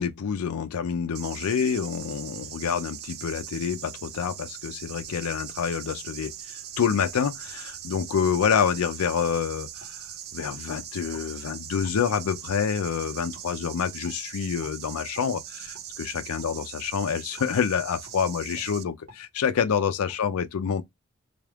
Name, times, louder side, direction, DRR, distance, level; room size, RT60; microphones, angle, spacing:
voice 1, 0.0-10.0 10.3-20.8, left 7 dB, 90° left, 0.4 m, -27 dB
sound 1, 1.1-18.8, right 10 dB, 45° right, 0.3 m, -41 dB
sound 2, 9.8-10.5 11.1-11.3 11.8-12.0 12.6-12.7 13.3-13.5 14.0-14.2 14.6-14.8 15.1-15.3 15.7-15.9 16.4-16.5 17.4-17.5 18.1-18.2 18.5-18.7 19.1-19.2 19.6-19.7 20.1-20.2, equal, 60° right, 2.1 m, -51 dB
3.5 x 3.4 x 2.3 m
head